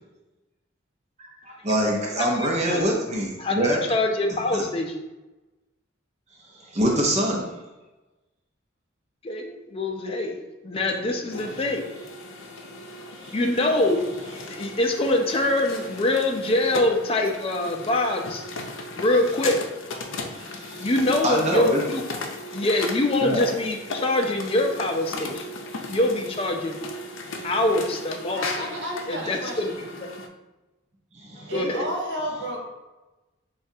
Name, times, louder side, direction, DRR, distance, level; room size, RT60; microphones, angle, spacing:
voice 1, 1.4-3.8 6.6-7.5 13.2-13.3 20.3-20.9 21.2-21.8 23.2-23.4 27.3-27.5 31.1-31.5, equal, 35° right, -1 dB, 0.6 m, -25 dB
voice 2, 2.2-2.8 3.4-4.9 9.2-10.4 10.6-11.9 13.3-14.0 14.5-18.4 19.0-19.6 20.8-22.0 22.5-25.6 25.9-26.8 27.4-28.6 29.1-29.9 31.4-31.8, left 1 dB, 30° left, 3 dB, 0.5 m, -24 dB
sound 1, 10.7-30.3, left 2 dB, 85° left, 0.5 m, -37 dB
voice 3, 28.3-29.8 31.5-32.7, right 1 dB, 65° right, -1 dB, 1.0 m, -31 dB
7.0 x 2.4 x 2.7 m, 1.1 s
head